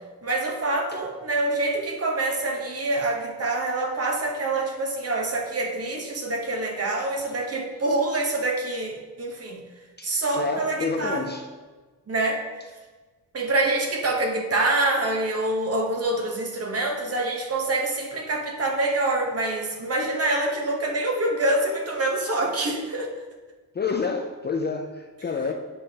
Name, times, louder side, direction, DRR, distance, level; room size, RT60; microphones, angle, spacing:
voice 1, 0.2-9.6 10.0-11.3 12.1-12.4 13.3-23.1, right 2 dB, 40° right, 2 dB, 1.0 m, -26 dB
voice 2, 10.0-11.5 23.7-25.5, left 4 dB, 30° left, 3 dB, 0.4 m, -28 dB
8.2 x 4.9 x 2.8 m, 1.3 s
cardioid pair, 105°, 37 cm